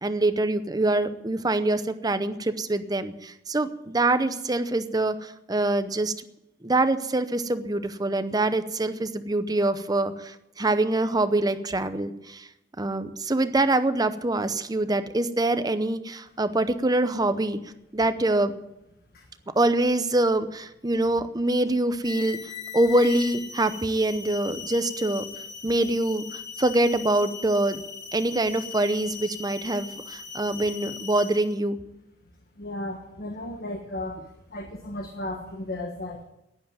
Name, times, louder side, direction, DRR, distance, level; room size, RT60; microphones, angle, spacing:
voice 1, 0.0-6.1 6.6-12.5 12.8-17.6 17.9-18.5 19.6-22.4 22.7-25.3 25.6-27.8 28.1-31.8, right 2 dB, 20° right, 11 dB, 0.7 m, -25 dB
sound 1, 22.0-31.6, left 7 dB, 80° left, 2.5 m, -39 dB
voice 2, 32.6-34.2 34.5-36.2, left 1 dB, 60° left, 4 dB, 1.4 m, -34 dB
11.0 x 10.5 x 9.0 m, 0.90 s
head